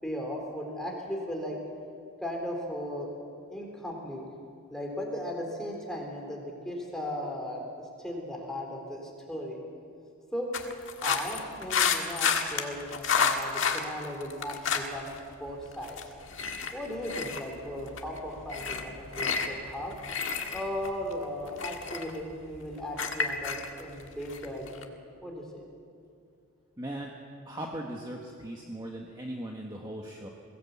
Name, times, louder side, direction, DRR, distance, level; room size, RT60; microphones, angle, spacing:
voice 1, 0.0-1.6 2.2-3.1 3.5-4.2 4.7-9.6 10.3-10.5 11.0-16.0 16.7-19.9 20.5-25.6, left 1 dB, 5° left, -1 dB, 3.8 m, -37 dB
sound 1, 10.5-15.2 15.5-24.8, left 6 dB, 55° left, 1.7 m, -30 dB
voice 2, 26.8-27.1 27.4-30.3, right 1 dB, 20° right, -1 dB, 1.4 m, -38 dB
22.0 x 17.5 x 8.4 m, 2.4 s
head